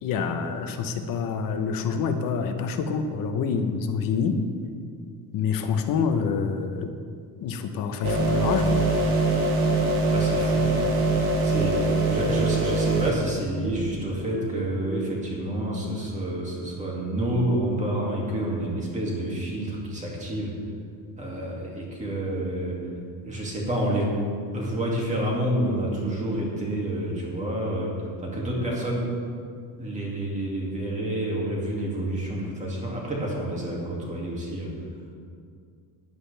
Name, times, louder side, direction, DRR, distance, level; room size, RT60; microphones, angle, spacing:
voice 1, 0.0-4.4 5.3-6.9 7.4-8.8, left 6 dB, 55° left, 7 dB, 1.1 m, -27 dB
sound 1, 8.0-13.1, right 2 dB, 65° right, 2.0 m, -23 dB
voice 2, 10.1-10.7 11.4-20.5 21.1-22.8 23.2-24.1 24.5-29.0 29.8-34.7, right 1 dB, 20° right, -3 dB, 2.4 m, -28 dB
15.0 x 11.0 x 3.4 m, 2.2 s
cardioid pair, 165°, 40 cm